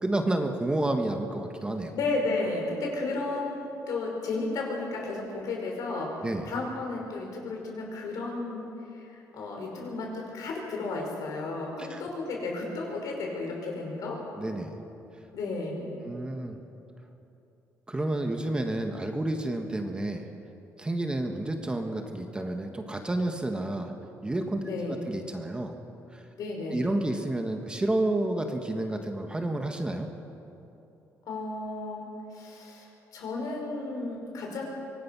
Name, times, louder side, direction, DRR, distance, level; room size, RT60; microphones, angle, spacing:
voice 1, 0.0-1.9 6.2-6.5 11.8-12.0 14.4-14.8 16.0-16.6 17.9-20.3 20.8-23.9 24.2-25.8 26.1-26.2 26.7-30.1, right 1 dB, 15° right, 4 dB, 1.5 m, -30 dB
voice 2, 1.9-6.1 6.5-14.2 15.3-15.9 24.6-25.0 26.4-26.9 31.3-34.7, left 3 dB, 70° left, 0 dB, 5.5 m, -33 dB
24.5 x 18.5 x 6.1 m, 2.8 s
cardioid pair, 125°, 6 cm